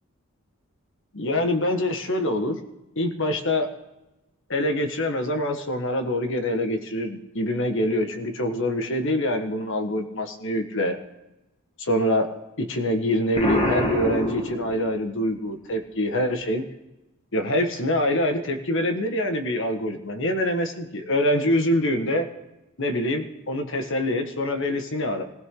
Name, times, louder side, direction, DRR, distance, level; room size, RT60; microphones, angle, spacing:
voice 1, 1.1-2.6 2.9-3.7 4.5-11.0 11.8-16.6 17.3-22.3 22.8-25.2, left 1 dB, 60° left, 6 dB, 1.6 m, -25 dB
Explosion, 13.3-15.2, left 1 dB, 30° left, 2.3 m, -26 dB
19.0 x 16.0 x 3.9 m, 0.97 s
head